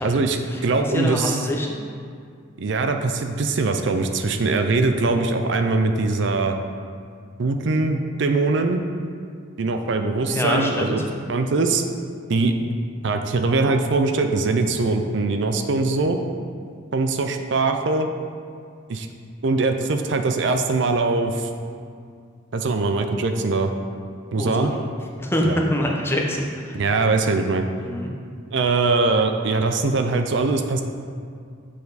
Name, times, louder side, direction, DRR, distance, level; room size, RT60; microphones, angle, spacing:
voice 1, 0.0-0.4 0.6-1.4 2.6-6.6 7.4-8.8 9.6-11.0 11.3-11.8 12.3-12.7 13.0-16.2 16.9-18.1 18.9-19.1 19.4-21.5 22.5-23.7 24.3-24.7 25.4-25.6 26.7-27.7 28.5-30.8, right 3 dB, 65° right, 6 dB, 0.5 m, -22 dB
voice 2, 0.9-1.8 10.3-11.0 24.4-24.7 25.2-25.4 25.7-26.8 27.8-28.1, left 1 dB, 10° left, -1 dB, 0.8 m, -25 dB
7.4 x 6.8 x 4.1 m, 2.2 s
head